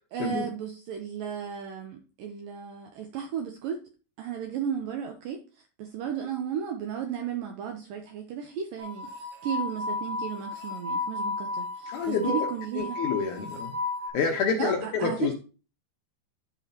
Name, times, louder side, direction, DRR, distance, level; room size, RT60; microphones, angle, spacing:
voice 1, 0.1-3.8 4.2-5.4 5.8-13.0 14.6-15.3, right 8 dB, 85° right, 4 dB, 1.9 m, -34 dB
sound 1, 8.8-14.1, left 3 dB, 65° right, 4.9 m, -33 dB
voice 2, 11.9-12.3 12.7-13.8 14.1-15.3, left 5 dB, 90° left, 2 dB, 1.7 m, -28 dB
11.5 x 7.0 x 2.8 m, 0.35 s
omnidirectional pair, 5.0 m